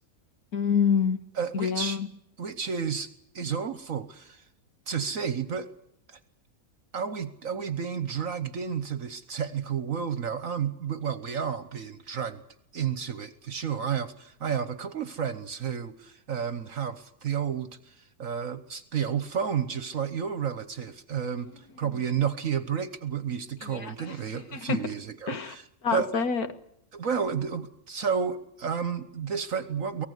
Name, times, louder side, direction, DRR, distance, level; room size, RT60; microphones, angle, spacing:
voice 1, 0.5-1.2 1.5-2.1 21.4-21.5 23.6-24.1 24.5-24.8 25.3-25.6 25.8-26.5, left 6 dB, 75° left, 10 dB, 2.2 m, -27 dB
voice 2, 1.4-2.0 2.4-3.1 3.3-4.4 4.9-5.7 6.1-6.2 6.9-12.4 12.7-25.6 25.9-26.1 26.9-30.1, right 7 dB, 65° right, 13 dB, 1.5 m, -31 dB
24.5 x 18.5 x 8.1 m, 0.75 s
omnidirectional pair, 1.6 m